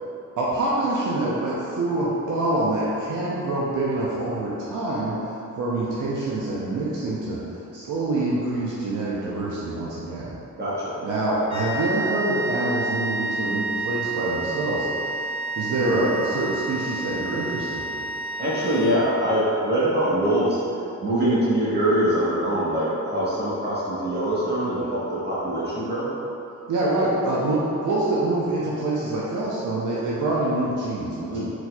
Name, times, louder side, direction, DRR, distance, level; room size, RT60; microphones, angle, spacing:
voice 1, 0.4-10.4 11.0-15.3 15.6-17.9 26.7-31.3, right 2 dB, 65° right, -6 dB, 0.7 m, -26 dB
voice 2, 10.6-11.0 15.7-16.0 18.4-20.6 21.0-26.1 31.3-31.5, right 1 dB, 30° right, -8 dB, 1.3 m, -23 dB
sound 1, 11.5-19.4, right 2 dB, 55° left, 0.6 m, -30 dB
4.3 x 4.3 x 2.3 m, 2.8 s
cardioid pair, 95°, 33 cm